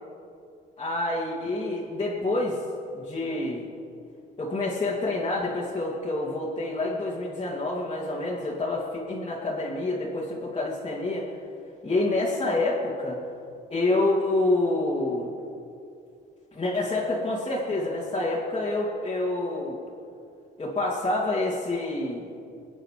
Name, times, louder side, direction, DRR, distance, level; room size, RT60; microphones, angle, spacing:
voice 1, 0.8-2.6 2.9-3.6 4.4-11.3 11.8-13.2 13.7-15.3 16.5-19.8 20.6-22.3, left 2 dB, 25° left, -7 dB, 2.5 m, -27 dB
22.5 x 8.9 x 5.0 m, 2.5 s
cardioid pair, 90°, 20 cm